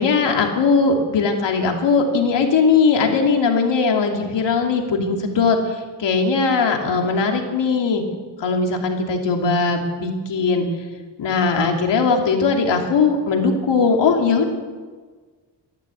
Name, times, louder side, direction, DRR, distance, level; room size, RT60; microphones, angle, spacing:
voice 1, 0.0-8.0 8.4-10.7 11.2-14.5, left 4 dB, 75° left, 2 dB, 2.9 m, -19 dB
14.0 x 11.5 x 8.5 m, 1.4 s
cardioid pair, 70°, 44 cm